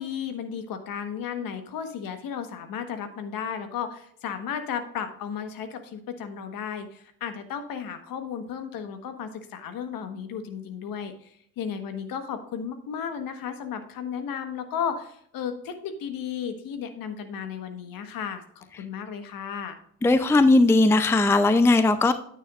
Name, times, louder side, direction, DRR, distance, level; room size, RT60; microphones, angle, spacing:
voice 1, 0.0-19.8, left 7 dB, 55° left, 8 dB, 1.5 m, -34 dB
voice 2, 20.0-22.1, left 2 dB, 5° left, 12 dB, 0.5 m, -18 dB
9.4 x 9.2 x 2.5 m, 0.65 s
hypercardioid pair, 70°, 41 cm